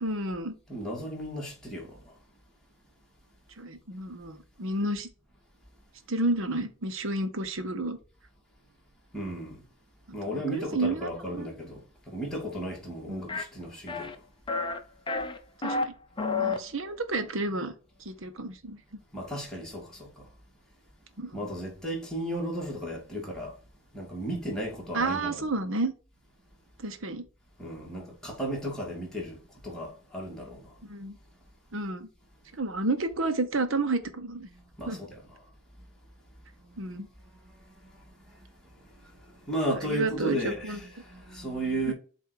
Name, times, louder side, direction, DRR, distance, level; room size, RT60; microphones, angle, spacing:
voice 1, 0.0-0.5 3.6-5.1 6.1-8.0 10.2-11.5 13.1-13.3 15.6-15.9 16.4-17.7 18.0-19.0 21.2-21.5 24.9-25.9 26.8-27.2 30.8-31.2 31.7-32.1 32.6-34.5 34.9-35.0 36.8-37.1 39.7-40.8 41.9-42.0, right 2 dB, 65° right, 1.0 m, -31 dB
voice 2, 0.7-2.0 9.1-9.6 10.1-14.1 19.1-20.3 21.3-23.5 23.9-25.5 27.6-29.4 29.6-30.7 34.5-35.2 37.8-37.9 39.4-41.9, right 1 dB, 5° left, 2.2 m, -34 dB
sound 1, 13.3-13.4 13.9-14.2 14.5-14.8 15.1-15.8 16.2-16.6, left 3 dB, 25° left, 0.7 m, -29 dB
8.1 x 2.7 x 4.7 m
head